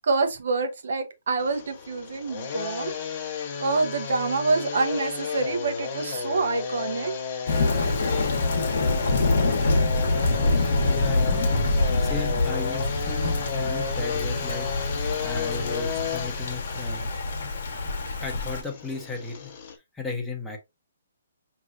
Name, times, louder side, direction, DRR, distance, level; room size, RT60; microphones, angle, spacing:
voice 1, 0.0-2.9 3.6-7.1, right 3 dB, 65° right, 1.1 m, -26 dB
sound 1, 1.4-19.8, left 6 dB, 35° left, 0.9 m, -33 dB
Thunder / Rain, 7.5-18.6, left 2 dB, 60° left, 1.1 m, -25 dB
voice 2, 10.8-14.7 15.2-17.5 18.2-19.5 19.9-20.6, left 4 dB, 5° left, 0.8 m, -35 dB
5.2 x 3.1 x 2.5 m
hypercardioid pair, 165°, 0 cm